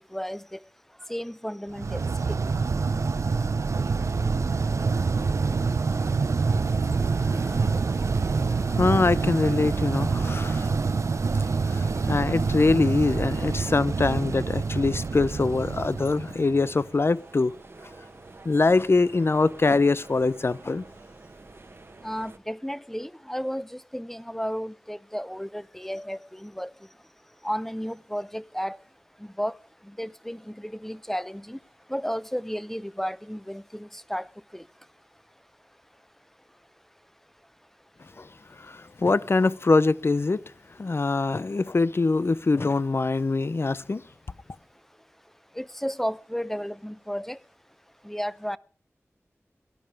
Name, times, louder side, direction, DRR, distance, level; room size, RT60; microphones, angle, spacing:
voice 1, 0.1-0.6 1.1-2.0 2.3-2.4 22.0-26.7 27.4-28.8 29.4-29.5 30.0-31.6 31.9-34.3 34.5-34.6 45.6-47.4 48.0-48.6, equal, 5° left, 0.6 m, -33 dB
sound 1, 1.8-16.8, right 4 dB, 85° right, 0.7 m, -26 dB
sound 2, 3.9-22.4, right 3 dB, 55° right, 1.2 m, -48 dB
voice 2, 7.0-7.8 8.5-10.7 11.7-17.5 18.4-20.8 38.2-38.3 38.7-40.4 40.8-44.0, left 3 dB, 55° left, 0.6 m, -24 dB
17.5 x 11.5 x 5.0 m
wide cardioid pair, 55°, 5 cm